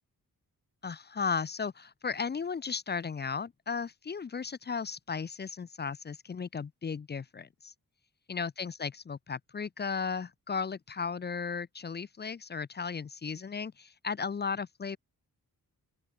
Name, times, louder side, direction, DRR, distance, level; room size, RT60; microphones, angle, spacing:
voice 1, 0.8-7.7 8.3-15.0, left 5 dB, 30° left, 0.4 m, -35 dB
open air
wide cardioid pair, 130°, 38 cm